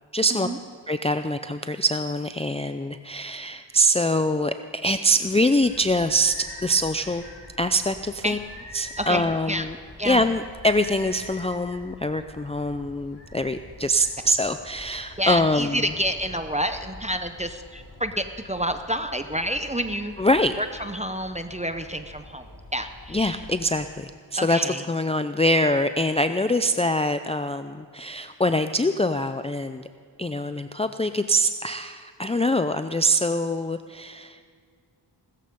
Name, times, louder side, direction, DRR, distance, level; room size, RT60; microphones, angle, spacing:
voice 1, 0.1-0.5 0.9-7.3 7.6-8.4 8.7-9.8 10.0-15.8 20.2-20.5 23.1-24.6 24.9-29.8 30.2-34.5, equal, 15° left, 9 dB, 0.5 m, -24 dB
sound 1, 5.6-23.9, left 1 dB, 30° left, 5.6 m, -46 dB
voice 2, 9.0-9.7 10.0-10.2 15.2-20.1 20.6-23.4 24.4-24.9, equal, 15° right, 8 dB, 0.8 m, -29 dB
17.5 x 14.0 x 5.4 m, 2.1 s
wide cardioid pair, 70°, 44 cm